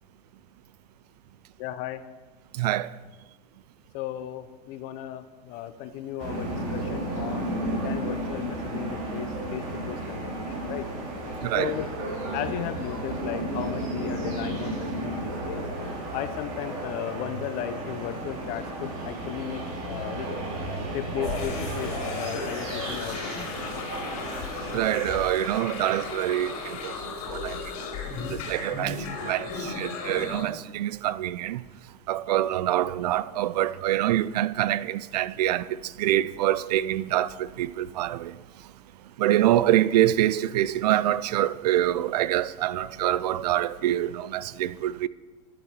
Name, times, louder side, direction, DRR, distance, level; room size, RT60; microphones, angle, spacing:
voice 1, 1.6-2.0 3.9-7.6 7.8-10.9 11.5-11.9 12.3-15.6 16.1-20.3 20.9-23.6, left 11 dB, 40° left, 0.8 m, -35 dB
voice 2, 2.6-2.9 11.4-11.7 24.7-26.9 27.3-27.6 28.3-31.6 32.1-35.7 36.0-37.3 37.6-38.3 39.2-45.1, right 13 dB, 80° right, 0.5 m, -25 dB
sound 1, 6.2-24.8, right 1 dB, 55° right, 3.9 m, -33 dB
sound 2, 21.2-30.4, left 4 dB, 60° left, 4.0 m, -35 dB
11.5 x 8.8 x 6.7 m
supercardioid pair, 160°, 20 cm